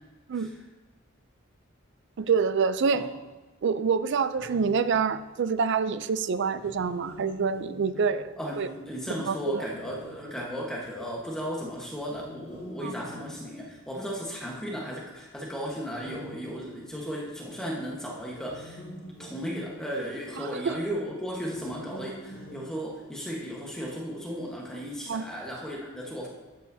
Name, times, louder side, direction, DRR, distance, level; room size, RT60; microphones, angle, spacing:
voice 1, 0.3-0.6 2.9-3.1 8.4-18.8 19.2-26.3, equal, 5° left, -3 dB, 1.2 m, -35 dB
voice 2, 2.2-3.0 3.6-8.7 9.3-9.6 12.8-12.9 20.7-20.8 25.1-25.2, right 5 dB, 60° right, 13 dB, 0.4 m, -26 dB
sound 1, 4.3-5.4 6.5-8.5 9.7-10.8 11.9-14.0 15.9-17.2 18.2-20.2 21.4-23.4, equal, 55° left, 2.3 m, -46 dB
12.0 x 8.1 x 2.7 m, 1.2 s
head